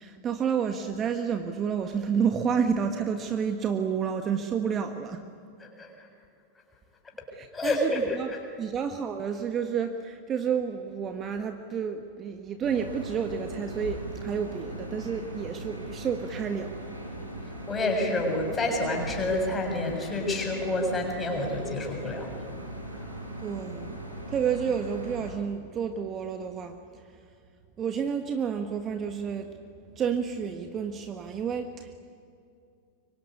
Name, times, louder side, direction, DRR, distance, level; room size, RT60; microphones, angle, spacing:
voice 1, 0.0-5.2 7.3-8.3 8.6-16.7 23.4-24.0 24.3-27.2 27.8-29.5 30.0-32.0, right 7 dB, 25° right, 6 dB, 1.6 m, -30 dB
voice 2, 7.5-8.0 17.7-22.5, left 2 dB, 15° left, 1 dB, 7.1 m, -28 dB
sound 1, 12.6-25.3, right 1 dB, 85° right, 5.8 m, -39 dB
25.0 x 24.0 x 9.8 m, 2.4 s
figure-of-eight pair, 90°, 0 cm